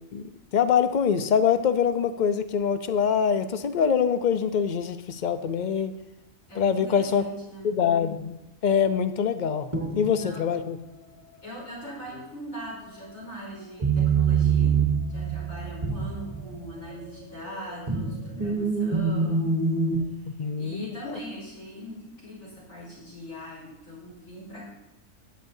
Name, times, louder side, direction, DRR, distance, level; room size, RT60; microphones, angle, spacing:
voice 1, 0.1-5.9 6.6-7.2 7.6-8.3 8.6-10.8 20.4-20.9, left 7 dB, 45° left, 10 dB, 0.6 m, -24 dB
voice 2, 6.5-7.8 10.2-10.5 11.4-14.8 15.1-24.7, equal, 70° left, -7 dB, 4.6 m, -41 dB
sound 1, 9.7-10.4 13.8-16.9 17.4-20.0, right 5 dB, 25° right, 1.2 m, -25 dB
19.5 x 8.4 x 2.7 m, 0.93 s
omnidirectional pair, 1.4 m